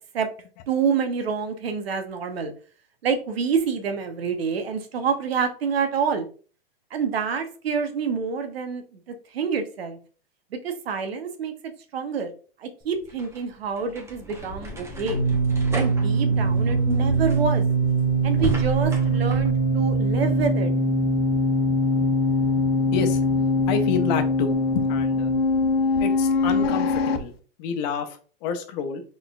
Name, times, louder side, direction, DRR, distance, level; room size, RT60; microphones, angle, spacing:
voice 1, 0.7-2.5 3.0-6.3 6.9-9.0 9.3-10.0 10.5-12.3 12.6-15.2 15.7-17.7 18.2-20.7, right 6 dB, 85° right, 1.0 m, -27 dB
sound 1, 12.8-19.5, right 1 dB, 10° right, 0.9 m, -35 dB
sound 2, 14.3-27.2, equal, 75° left, 0.8 m, -22 dB
voice 2, 23.7-25.3 26.0-27.3 27.6-29.0, left 6 dB, 45° left, 0.9 m, -29 dB
4.0 x 3.7 x 2.4 m
hypercardioid pair, 125°, 30 cm